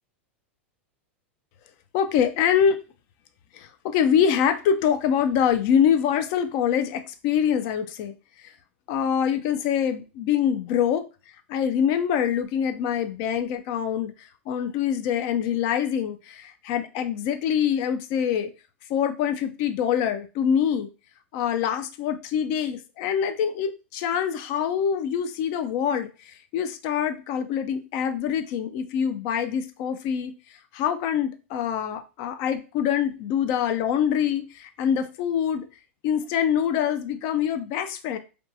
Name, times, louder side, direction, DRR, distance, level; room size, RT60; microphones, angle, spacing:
voice 1, 1.9-2.8 3.5-8.1 8.4-8.5 8.9-11.0 11.5-18.5 18.9-20.9 21.3-35.7 36.0-38.2, left 8 dB, 55° left, 0.4 m, -25 dB
2.5 x 2.2 x 2.7 m
hypercardioid pair, 105°, 7 cm